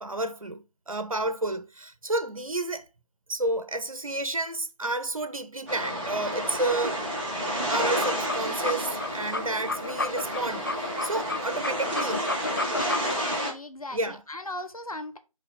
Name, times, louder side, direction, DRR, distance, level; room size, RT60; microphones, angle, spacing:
voice 1, 0.0-2.9 3.3-7.0 7.7-10.7 11.0-12.3 13.9-14.2, right 2 dB, 65° right, 0.9 m, -30 dB
sound 1, 5.7-13.5, equal, 15° right, 1.7 m, -30 dB
sound 2, 7.8-13.3, left 2 dB, 35° left, 0.4 m, -32 dB
voice 2, 12.8-15.2, left 1 dB, 75° left, 1.2 m, -38 dB
5.7 x 3.5 x 5.3 m
figure-of-eight pair, 160°, 19 cm